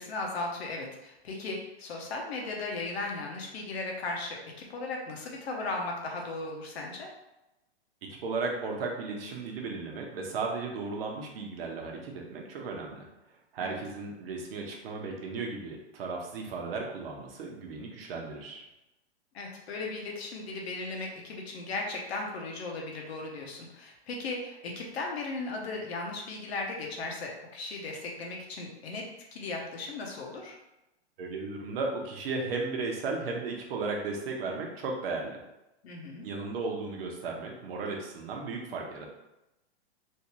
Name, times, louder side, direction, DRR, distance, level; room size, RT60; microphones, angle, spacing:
voice 1, 0.0-7.1 13.6-13.8 19.3-29.0 29.3-30.6 35.8-36.3, left 3 dB, 65° left, 0 dB, 1.0 m, -36 dB
voice 2, 8.1-13.1 13.5-18.6 31.2-35.4 36.2-39.1, right 3 dB, 60° right, 0 dB, 0.9 m, -35 dB
3.3 x 2.7 x 3.0 m, 0.93 s
hypercardioid pair, 130°, 33 cm